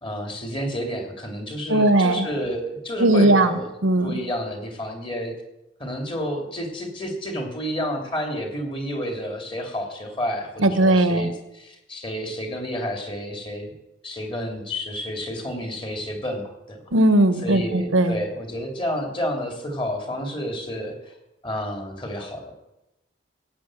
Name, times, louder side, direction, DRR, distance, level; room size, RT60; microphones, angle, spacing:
voice 1, 0.0-3.7 4.0-5.3 5.8-13.7 14.0-16.8 17.4-21.1 21.4-22.5, equal, 25° left, 2 dB, 2.7 m, -30 dB
voice 2, 1.7-2.3 3.0-3.5 3.8-4.1 10.6-11.3 16.9-18.2, right 1 dB, 80° right, 10 dB, 1.1 m, -18 dB
16.5 x 8.3 x 7.6 m, 0.91 s
head